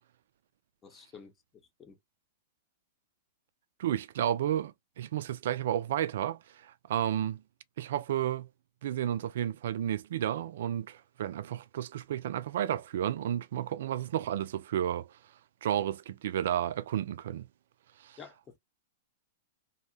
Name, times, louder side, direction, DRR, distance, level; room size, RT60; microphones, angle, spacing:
voice 1, 0.8-1.3 1.8-2.0 18.2-18.6, left 6 dB, 25° left, 0.7 m, -50 dB
voice 2, 3.8-7.4 7.8-8.5 8.8-15.1 15.6-17.5 18.0-18.2, right 11 dB, 70° right, 0.3 m, -32 dB
2.7 x 2.1 x 2.7 m
hypercardioid pair, 115°, 0 cm